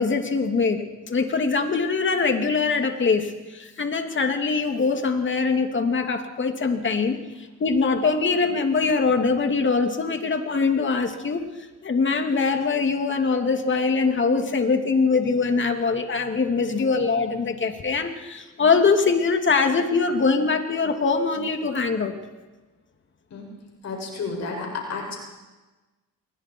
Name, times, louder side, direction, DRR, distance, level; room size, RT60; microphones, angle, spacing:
voice 1, 0.0-7.2 7.6-11.4 11.8-22.2, left 4 dB, 40° left, 5 dB, 2.7 m, -23 dB
voice 2, 23.8-25.1, left 4 dB, 60° left, 0 dB, 6.8 m, -31 dB
27.0 x 23.0 x 4.7 m, 1.2 s
cardioid pair, 90°, 30 cm